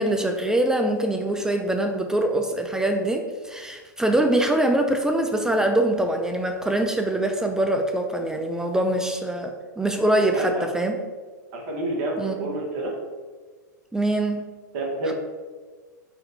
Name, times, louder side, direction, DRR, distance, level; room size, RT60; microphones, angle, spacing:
voice 1, 0.0-11.0 12.2-12.5 13.9-14.5 15.1-15.2, right 1 dB, 5° right, 4 dB, 0.3 m, -23 dB
voice 2, 10.3-10.7 11.5-12.9 14.7-15.1, right 2 dB, 50° right, -1 dB, 1.2 m, -28 dB
4.2 x 2.6 x 4.1 m, 1.4 s
hypercardioid pair, 110°, 10 cm